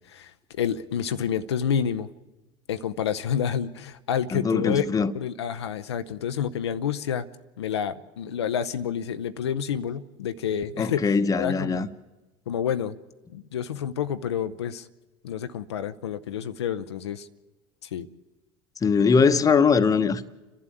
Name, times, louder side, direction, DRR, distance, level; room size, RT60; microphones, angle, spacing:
voice 1, 0.1-2.1 2.7-4.9 5.1-7.3 7.6-11.1 11.4-11.9 12.5-13.0 13.3-14.9 15.2-17.3 17.8-18.1, left 8 dB, 85° left, 0.6 m, -29 dB
voice 2, 4.3-5.1 10.8-11.9 18.8-20.2, left 5 dB, 25° left, 1.1 m, -21 dB
29.5 x 11.5 x 8.5 m
hypercardioid pair, 75°, 14 cm